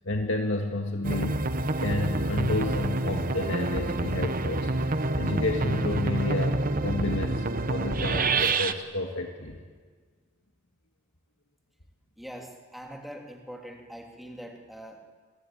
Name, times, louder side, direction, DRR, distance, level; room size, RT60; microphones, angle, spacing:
voice 1, 0.0-1.4 1.8-4.7 5.2-9.6, left 2 dB, 65° left, 2 dB, 2.0 m, -30 dB
sound 1, 1.0-8.7, right 2 dB, 40° right, 1.1 m, -27 dB
voice 2, 12.2-15.1, equal, ahead, 1 dB, 2.8 m, -43 dB
27.5 x 21.0 x 9.0 m, 1.5 s
head